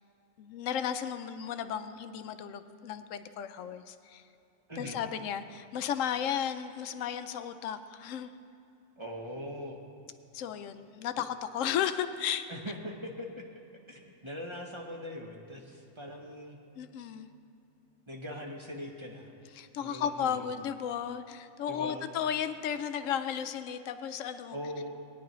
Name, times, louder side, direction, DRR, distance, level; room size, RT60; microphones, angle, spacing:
voice 1, 0.4-4.2 4.8-8.3 10.3-12.5 16.8-17.3 19.5-24.6, left 9 dB, 75° left, 10 dB, 0.9 m, -34 dB
voice 2, 9.0-9.8 12.5-13.4 13.9-16.6 18.1-19.3 19.8-20.5 21.7-22.1 24.5-24.9, equal, 25° right, 0 dB, 0.8 m, -41 dB
17.5 x 10.0 x 3.0 m, 2.7 s
omnidirectional pair, 1.4 m